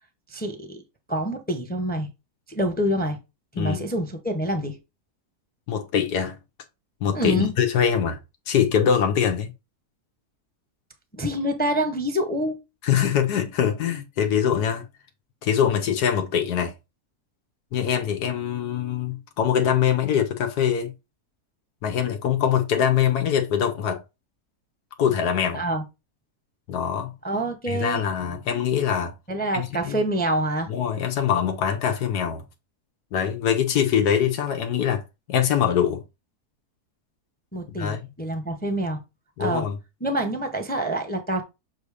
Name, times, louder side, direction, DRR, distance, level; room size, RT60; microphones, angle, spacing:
voice 1, 0.3-0.8 1.1-2.1 2.5-3.2 3.6-4.8 7.1-7.5 11.1-12.6 25.5-25.8 27.2-28.0 29.3-30.7 37.5-39.0 39.4-39.6 40.0-41.4, right 1 dB, 10° left, 0.7 m, -26 dB
voice 2, 3.6-3.9 5.7-6.4 7.0-8.2 8.5-9.5 12.8-14.8 15.4-16.7 17.7-20.9 21.8-24.0 25.0-25.6 26.7-27.1 27.7-29.1 29.5-30.0 30.7-32.4 33.1-35.0 35.3-36.0 37.8-38.0 39.4-39.8, left 8 dB, 90° left, 1.5 m, -23 dB
7.1 x 2.8 x 4.9 m
omnidirectional pair, 1.7 m